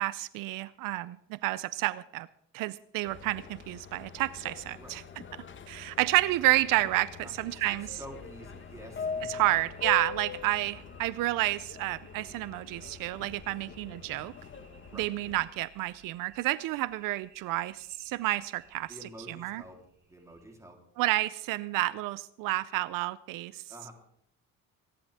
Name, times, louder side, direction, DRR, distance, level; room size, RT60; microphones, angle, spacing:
voice 1, 0.0-2.3 2.5-5.0 5.7-7.1 7.4-7.9 9.3-14.3 15.0-18.9 19.3-19.6 21.0-23.6, right 18 dB, 80° right, 18 dB, 0.6 m, -30 dB
Subway metro underground, 3.1-15.5, left 6 dB, 35° left, 1.4 m, -43 dB
voice 2, 7.2-9.6 14.9-15.1 18.8-19.8 20.1-20.8 23.7-23.9, equal, 10° right, 2 dB, 3.5 m, -49 dB
sound 1, 7.7-20.6, right 5 dB, 30° right, 4.1 m, -58 dB
25.0 x 10.5 x 3.6 m, 0.72 s
cardioid pair, 110°, 33 cm